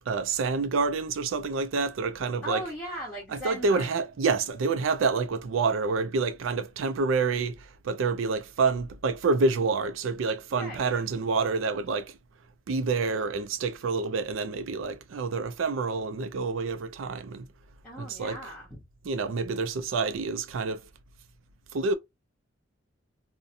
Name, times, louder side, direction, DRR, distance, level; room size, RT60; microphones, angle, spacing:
voice 1, 0.1-2.6 3.3-12.2 12.7-17.5 18.0-18.4 19.0-20.8 21.7-21.9, right 4 dB, 90° right, 0.4 m, -28 dB
voice 2, 2.4-4.0 10.5-11.0 17.8-18.8, equal, 10° left, 0.9 m, -38 dB
2.7 x 2.1 x 2.5 m
head